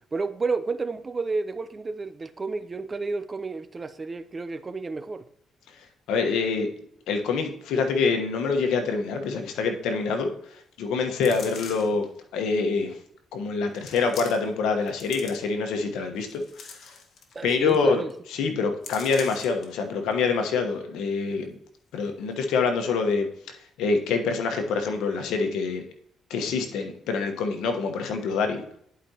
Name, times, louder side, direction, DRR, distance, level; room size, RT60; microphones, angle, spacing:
voice 1, 0.1-5.2 17.3-18.1, right 3 dB, 30° right, 0.7 m, -31 dB
voice 2, 6.1-6.7 7.1-10.3 10.8-12.1 12.3-13.0 13.3-16.4 17.4-18.0 18.3-21.5 21.9-23.3 23.8-25.8 26.3-28.6, left 4 dB, 90° left, 1.3 m, -25 dB
sound 1, 11.2-12.0 12.8-12.9 13.8-14.6 14.9-15.7 16.2-17.4 17.7-17.8 18.1-18.3 18.8-19.7 20.1-20.2, left 5 dB, 60° left, 1.4 m, -42 dB
11.0 x 5.1 x 2.9 m
cardioid pair, 90°, 0 cm